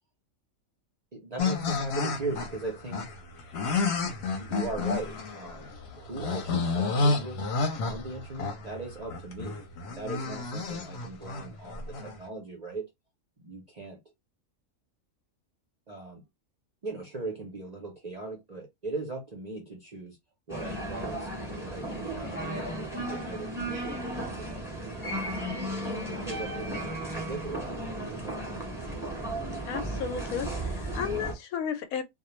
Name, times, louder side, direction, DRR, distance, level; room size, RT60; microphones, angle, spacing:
voice 1, 1.1-3.0 4.4-7.4 7.8-9.6 9.9-12.9 13.4-14.0 15.9-16.2 16.8-20.2 20.5-24.7 25.2-25.6 26.1-28.4, right 2 dB, 50° right, 0.5 m, -39 dB
sound 1, 1.4-12.2, left 3 dB, 60° left, 0.8 m, -30 dB
sound 2, 20.5-31.3, right 1 dB, ahead, 1.0 m, -35 dB
voice 2, 29.7-32.0, left 7 dB, 90° left, 1.0 m, -33 dB
2.2 x 2.1 x 3.0 m
omnidirectional pair, 1.4 m